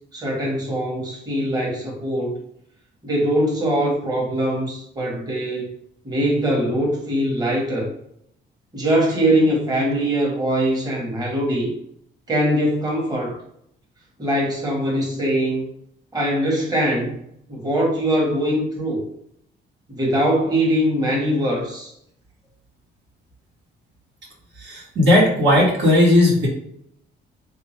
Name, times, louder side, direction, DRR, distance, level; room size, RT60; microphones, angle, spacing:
voice 1, 0.1-2.4 3.0-5.7 6.0-7.9 8.7-11.7 12.3-13.4 14.2-15.6 16.1-17.1 17.5-19.0 19.9-21.9, right 1 dB, 20° right, -3 dB, 1.2 m, -22 dB
voice 2, 24.6-26.5, left 1 dB, 65° right, -3 dB, 1.4 m, -16 dB
3.4 x 2.7 x 3.2 m, 0.71 s
cardioid pair, 90°, 20 cm